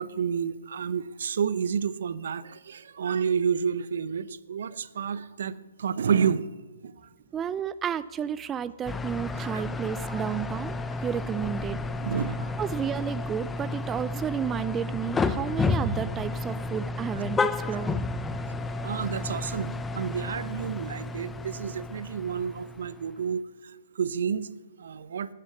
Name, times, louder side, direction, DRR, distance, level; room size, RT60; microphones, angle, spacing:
voice 1, 0.0-5.5 5.8-6.4 9.5-9.6 12.0-12.5 17.7-17.8 18.8-23.4 24.0-24.5 24.8-25.3, right 7 dB, 65° right, 16 dB, 0.8 m, -29 dB
voice 2, 7.3-10.7 11.0-11.8 12.6-17.9, right 8 dB, 15° right, 15 dB, 0.4 m, -32 dB
sound 1, 8.9-23.2, left 3 dB, 10° left, 0.7 m, -32 dB
12.5 x 11.5 x 9.4 m, 1.3 s
hypercardioid pair, 135°, 0 cm